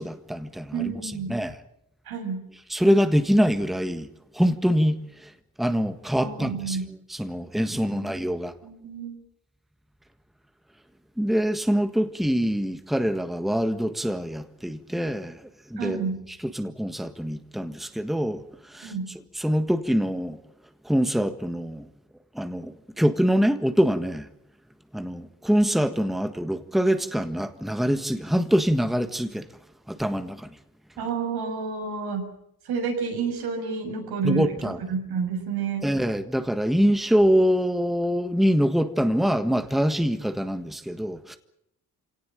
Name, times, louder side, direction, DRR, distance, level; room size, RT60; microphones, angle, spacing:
voice 1, 0.0-1.6 2.7-4.1 4.3-5.3 5.6-6.8 7.1-8.5 11.2-15.4 15.7-16.1 16.4-18.4 18.7-18.9 19.3-20.4 20.8-21.9 22.3-24.3 24.9-29.5 29.9-30.5 34.2-34.8 35.8-41.4, equal, ahead, 1.6 m, -24 dB
voice 2, 0.7-1.3 2.1-2.4 6.2-6.9 8.6-9.2 15.8-16.2 18.8-19.1 31.0-32.3 32.7-35.9, right 5 dB, 85° right, 6.8 m, -30 dB
25.5 x 18.0 x 8.9 m
cardioid pair, 85°, 37 cm